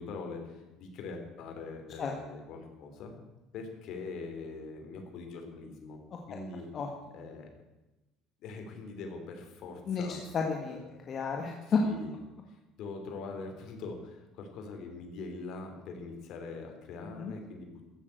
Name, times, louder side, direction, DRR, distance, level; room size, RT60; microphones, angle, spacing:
voice 1, 0.0-3.2 3.5-6.0 6.3-6.7 7.1-7.5 8.4-10.2 10.7-10.8 11.6-12.1 12.5-17.9, left 4 dB, 60° left, 4 dB, 3.3 m, -43 dB
voice 2, 6.7-7.2 9.9-10.8 11.1-11.8 17.2-17.3, left 5 dB, 40° left, 1 dB, 1.7 m, -32 dB
14.5 x 7.4 x 8.2 m, 1.0 s
cardioid pair, 120°, 0 cm